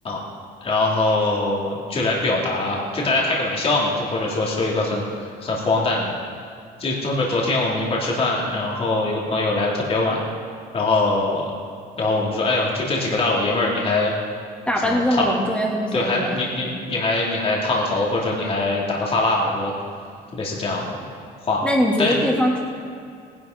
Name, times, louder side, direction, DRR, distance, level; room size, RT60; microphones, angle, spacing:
voice 1, 0.6-6.1 6.8-10.2 10.7-11.5 12.0-14.1 14.9-15.2 15.9-19.7 20.3-21.0 21.5-21.6 22.0-22.1, left 2 dB, 35° left, -3 dB, 2.7 m, -22 dB
voice 2, 14.7-16.4 21.6-22.6, equal, 5° left, -2 dB, 2.6 m, -21 dB
18.5 x 11.0 x 3.9 m, 2.3 s
cardioid pair, 110°, 17 cm